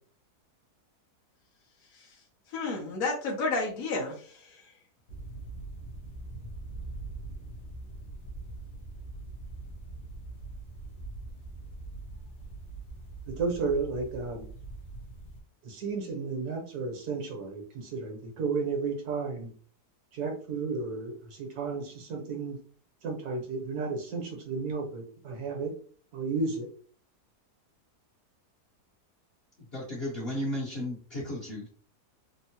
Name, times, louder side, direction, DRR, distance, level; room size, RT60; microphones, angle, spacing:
voice 1, 2.5-4.6, left 3 dB, 65° left, -3 dB, 1.2 m, -31 dB
sound 1, 5.1-15.4, right 2 dB, 90° left, 1.4 m, -42 dB
voice 2, 13.3-14.5 15.6-19.5 20.1-22.6 23.0-25.7 26.1-26.7, right 4 dB, 75° right, 2 dB, 1.4 m, -33 dB
voice 3, 29.7-31.7, left 1 dB, 40° left, -5 dB, 1.1 m, -34 dB
3.6 x 2.1 x 2.8 m, 0.43 s
omnidirectional pair, 1.7 m